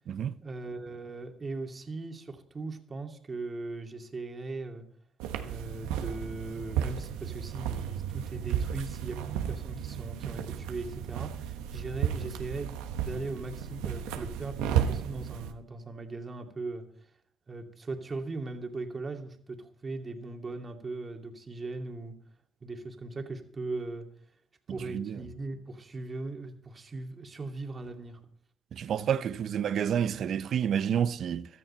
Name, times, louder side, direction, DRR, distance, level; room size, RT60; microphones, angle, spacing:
voice 1, 0.4-4.9 5.4-16.9 17.5-22.2 22.6-24.1 24.7-28.2, right 3 dB, 35° right, 2.4 m, -39 dB
sound 1, 5.2-15.5, right 9 dB, 85° right, 1.3 m, -33 dB
voice 2, 28.7-31.5, right 8 dB, 60° right, 0.8 m, -29 dB
15.5 x 13.0 x 4.3 m
supercardioid pair, 75°, 0 cm